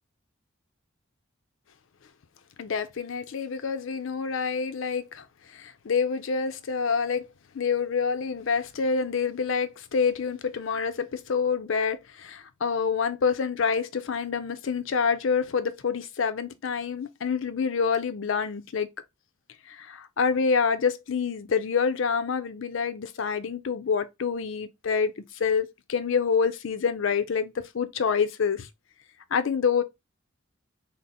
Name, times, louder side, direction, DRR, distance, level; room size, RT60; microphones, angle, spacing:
voice 1, 2.6-5.2 5.5-7.3 7.5-18.9 19.7-28.7 29.3-29.8, left 5 dB, 65° left, 0.5 m, -27 dB
4.0 x 2.0 x 3.6 m
head